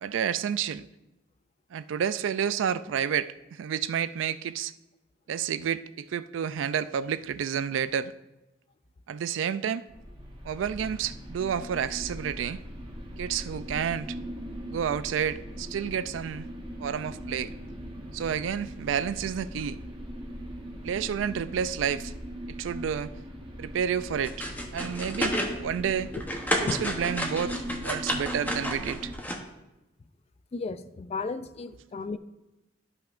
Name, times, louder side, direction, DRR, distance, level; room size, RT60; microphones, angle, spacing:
voice 1, 0.0-0.9 1.7-4.7 5.3-8.1 9.1-9.8 10.4-12.6 13.2-14.2 14.7-16.5 16.8-17.5 18.1-19.8 20.8-22.1 22.5-23.1 23.6-24.4 24.7-26.1 26.6-27.5 27.8-29.1, right 8 dB, 75° right, 0.3 m, -30 dB
sound 1, 9.9-29.1, equal, 25° right, 0.9 m, -40 dB
sound 2, 24.2-25.5 25.9-29.4, equal, 10° left, 0.8 m, -31 dB
voice 2, 30.5-32.2, left 4 dB, 35° left, 0.3 m, -34 dB
12.5 x 5.7 x 2.5 m
head